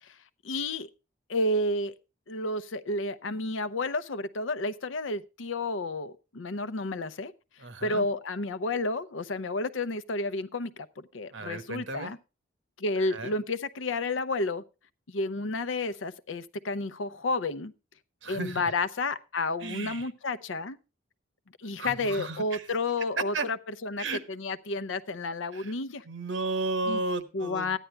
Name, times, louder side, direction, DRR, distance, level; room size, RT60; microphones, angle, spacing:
voice 1, 0.4-0.9 1.3-1.9 2.3-7.3 7.8-12.2 12.8-14.6 15.1-17.7 18.3-20.8 21.6-26.0 26.9-27.0 27.3-27.8, left 2 dB, 85° left, 0.7 m, -31 dB
voice 2, 7.6-8.1 11.3-12.1 13.1-13.3 18.2-18.7 19.6-20.1 21.6-22.6 23.3-23.5 24.0-24.2 25.5-25.7 26.1-27.8, right 3 dB, 70° right, 1.2 m, -34 dB
13.5 x 10.0 x 3.3 m
head